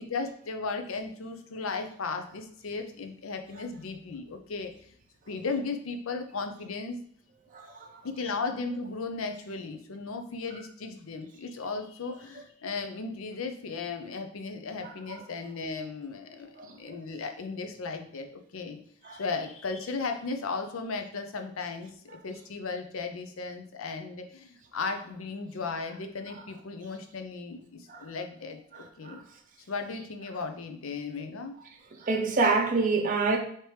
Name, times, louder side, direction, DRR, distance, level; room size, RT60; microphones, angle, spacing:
voice 1, 0.0-4.9 5.3-7.0 8.0-18.8 19.0-29.2 29.7-31.5, left 4 dB, 75° left, 6 dB, 0.6 m, -36 dB
voice 2, 7.5-8.0 14.8-14.9 16.6-16.8 19.0-19.2 27.9-28.1 28.7-29.2 32.0-33.4, right 4 dB, 40° right, 2 dB, 0.5 m, -27 dB
4.6 x 2.9 x 3.2 m, 0.64 s
head